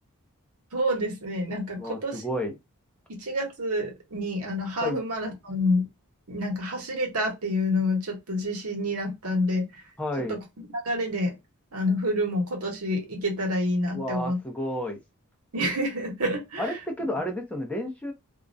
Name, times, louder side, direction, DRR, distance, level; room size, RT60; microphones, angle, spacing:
voice 1, 0.7-2.2 3.1-5.9 6.3-9.8 10.3-10.4 10.7-11.4 11.7-14.4 15.5-16.7, left 1 dB, 75° right, 1.0 m, -28 dB
voice 2, 1.8-2.5 4.8-5.0 10.0-10.4 13.9-15.0 16.6-18.1, left 1 dB, 5° left, 0.5 m, -31 dB
2.4 x 2.1 x 2.5 m
head